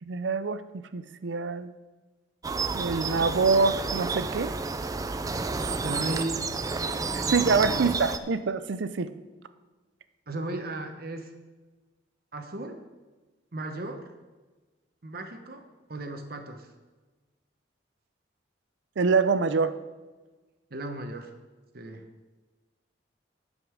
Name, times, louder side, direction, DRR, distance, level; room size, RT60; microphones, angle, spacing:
voice 1, 0.0-0.6 0.9-1.7 2.7-4.5 7.3-9.1 19.0-19.8, right 4 dB, 70° right, 12 dB, 0.5 m, -25 dB
sound 1, 2.4-8.2, right 4 dB, 20° right, 0.3 m, -30 dB
voice 2, 5.8-6.5 6.8-6.9 7.7-8.1 10.3-11.3 12.3-12.8 13.5-14.1 15.0-16.7 20.7-21.3 21.7-22.1, right 2 dB, 50° right, 6 dB, 1.0 m, -36 dB
10.5 x 5.3 x 6.2 m, 1.3 s
head